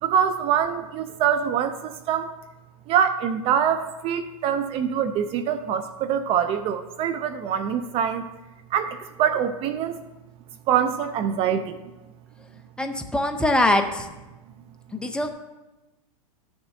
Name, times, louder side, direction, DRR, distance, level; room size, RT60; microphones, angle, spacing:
voice 1, 0.0-2.3 2.9-8.2 8.7-10.0 10.7-11.8, right 8 dB, 35° right, 10 dB, 0.5 m, -24 dB
voice 2, 12.8-14.1 14.9-15.3, left 1 dB, 5° left, 5 dB, 0.6 m, -23 dB
13.0 x 6.8 x 2.7 m, 1.1 s
hypercardioid pair, 120°, 18 cm